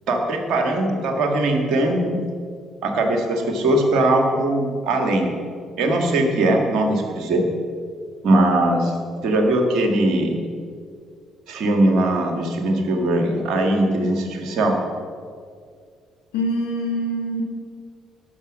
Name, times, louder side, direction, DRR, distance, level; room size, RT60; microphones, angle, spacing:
voice 1, 0.1-2.2 2.8-5.3 5.8-7.4 8.2-8.9 9.2-10.4 11.5-14.8, right 1 dB, 70° right, 3 dB, 1.8 m, -20 dB
voice 2, 16.3-17.4, equal, 90° left, 1 dB, 1.4 m, -24 dB
12.5 x 6.2 x 7.3 m, 2.1 s
hypercardioid pair, 60°, 0 cm